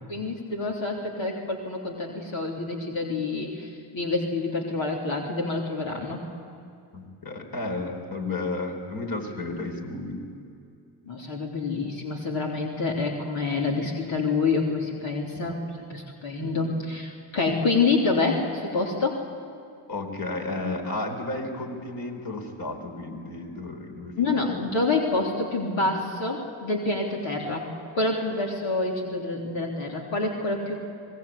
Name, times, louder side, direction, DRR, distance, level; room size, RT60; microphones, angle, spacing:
voice 1, 0.1-6.3 11.1-15.6 15.9-19.2 24.2-27.7 27.9-30.8, left 3 dB, 70° left, -1 dB, 3.6 m, -27 dB
voice 2, 6.9-10.2 15.5-15.6 16.4-16.5 19.9-24.7, left 2 dB, 45° left, 3 dB, 4.3 m, -33 dB
25.0 x 20.0 x 8.4 m, 2.5 s
supercardioid pair, 55°, 48 cm